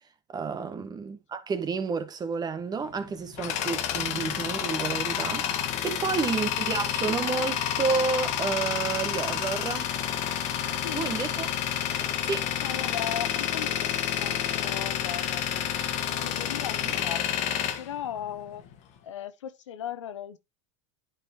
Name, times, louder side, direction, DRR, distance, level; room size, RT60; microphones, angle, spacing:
voice 1, 0.3-9.9 10.9-11.5 12.2-12.5 16.8-16.9, right 5 dB, 25° right, 1.5 m, -30 dB
Tools, 2.9-18.7, left 10 dB, 50° left, 1.4 m, -29 dB
voice 2, 5.9-6.2 10.7-11.1 12.6-15.6 16.1-18.6 19.0-20.4, left 10 dB, 85° left, 0.8 m, -38 dB
9.7 x 5.1 x 2.9 m
hypercardioid pair, 100°, 15 cm